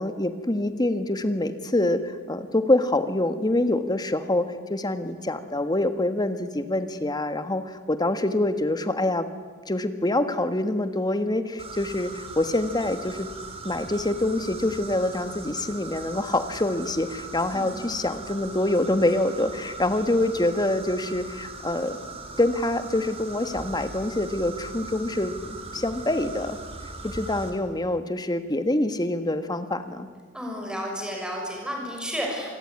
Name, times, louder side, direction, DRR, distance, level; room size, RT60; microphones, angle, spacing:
voice 1, 0.0-9.3 9.7-13.3 13.6-22.0 22.4-26.6 27.0-30.1, left 1 dB, 20° left, 9 dB, 1.6 m, -25 dB
sound 1, 11.6-27.5, right 3 dB, 30° right, 3.9 m, -40 dB
voice 2, 17.5-18.3 30.3-32.5, equal, 5° right, 0 dB, 6.6 m, -33 dB
27.0 x 21.0 x 9.7 m, 1.5 s
head